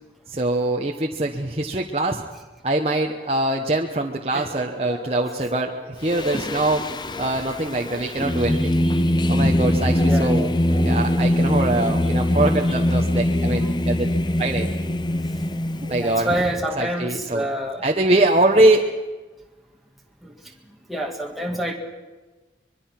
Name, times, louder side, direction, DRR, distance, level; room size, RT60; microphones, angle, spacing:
voice 1, 0.3-2.2 2.6-6.8 7.2-8.7 9.3-10.5 10.8-14.1 14.4-14.7 15.8-16.5 16.8-17.5 17.8-18.8, right 2 dB, 35° right, 1 dB, 1.1 m, -23 dB
sound 1, 4.8-5.8 6.1-6.8 7.1-7.4 7.8-8.2 9.9-10.2 10.7-11.4 11.7-12.1 12.5-12.6, equal, 40° left, 4.7 m, -38 dB
Singing, 6.0-16.5, left 1 dB, 25° left, 0.7 m, -22 dB
voice 2, 10.1-10.5 16.0-17.9 20.2-20.3 20.9-21.8, right 1 dB, ahead, 0 dB, 1.9 m, -27 dB
24.5 x 22.5 x 6.0 m, 1.2 s
head